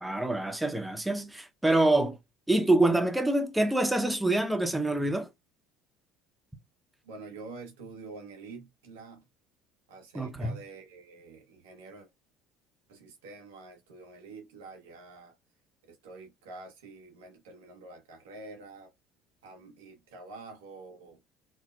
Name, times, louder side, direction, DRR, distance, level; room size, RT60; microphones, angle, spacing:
voice 1, 0.0-2.2 2.5-5.3 10.1-10.5, right 2 dB, 10° right, 0.8 m, -26 dB
voice 2, 7.0-9.3 9.9-12.1 12.9-15.4 15.8-18.9 19.4-21.2, right 3 dB, 85° right, 1.0 m, -47 dB
4.3 x 2.1 x 2.4 m
hypercardioid pair, 75°, 0 cm